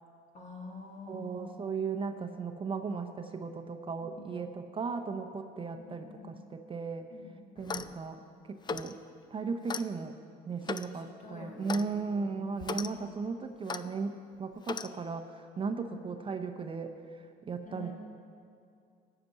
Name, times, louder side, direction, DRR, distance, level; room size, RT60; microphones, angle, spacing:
voice 1, 0.3-1.6 4.0-4.4 5.8-6.4 7.1-7.4 11.1-11.8 12.1-13.1 15.8-16.0 17.7-17.9, left 3 dB, 45° left, 0 dB, 2.1 m, -48 dB
voice 2, 1.1-7.1 7.6-9.0 9.3-10.2 10.5-17.9, right 4 dB, 30° right, 6 dB, 0.7 m, -36 dB
Clock, 7.6-8.0 8.6-8.9 9.7-9.9 10.6-10.9 11.7-11.9 12.6-12.9 13.7-13.8 14.6-14.9, left 5 dB, 25° left, 0.4 m, -37 dB
13.0 x 5.8 x 8.1 m, 2.4 s
cardioid pair, 110°, 17 cm